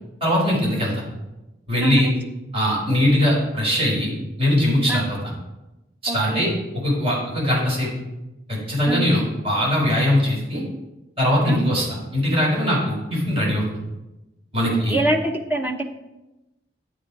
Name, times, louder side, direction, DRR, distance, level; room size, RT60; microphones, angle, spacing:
voice 1, 0.2-1.0 1.7-2.1 2.5-4.1 4.4-5.0 6.0-6.5 6.8-7.9 8.5-10.6 11.2-11.8 12.1-13.7 14.5-15.0, left 1 dB, 30° right, -4 dB, 4.8 m, -21 dB
voice 2, 1.8-2.1 4.9-5.1 6.1-6.4 8.8-9.1 11.5-11.8 14.6-15.8, right 2 dB, 10° right, 3 dB, 1.0 m, -25 dB
11.0 x 9.1 x 4.9 m, 0.99 s
head